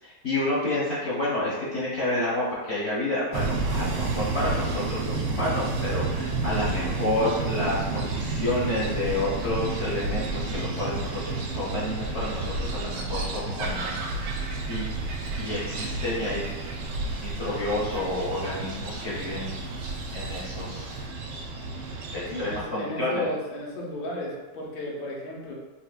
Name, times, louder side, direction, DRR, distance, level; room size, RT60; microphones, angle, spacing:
voice 1, 0.0-14.4 14.7-14.9 15.4-16.4 17.1-19.6 20.1-21.0 22.1-23.2, left 1 dB, 50° left, -8 dB, 0.8 m, -29 dB
sound 1, 3.3-22.6, right 3 dB, 85° right, 1.2 m, -31 dB
sound 2, 13.6-21.1, right 3 dB, 70° right, 0.8 m, -41 dB
voice 2, 22.3-25.5, left 1 dB, 80° left, -2 dB, 0.5 m, -34 dB
3.5 x 2.8 x 2.3 m, 1.2 s
omnidirectional pair, 1.8 m